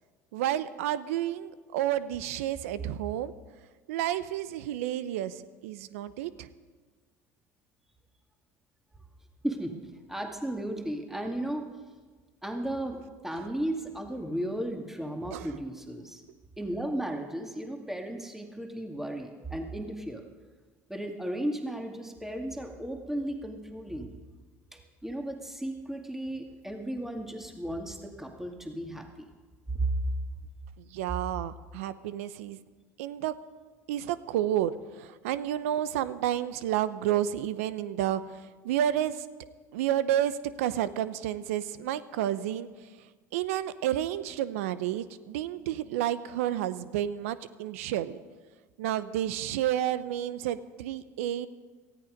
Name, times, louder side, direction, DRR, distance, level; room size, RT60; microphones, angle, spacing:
voice 1, 0.3-3.3 3.9-6.5 15.3-15.5 30.8-32.6 33.0-33.3 33.9-39.3 39.7-42.7 43.0-43.1 43.3-48.2 48.8-51.5, right 11 dB, 80° right, 15 dB, 0.7 m, -30 dB
voice 2, 10.1-11.7 12.4-16.2 16.6-20.2 20.9-24.1 24.7-29.3 29.7-29.9, right 1 dB, 5° right, 3 dB, 2.4 m, -35 dB
18.0 x 14.0 x 5.2 m, 1.4 s
hypercardioid pair, 75°, 7 cm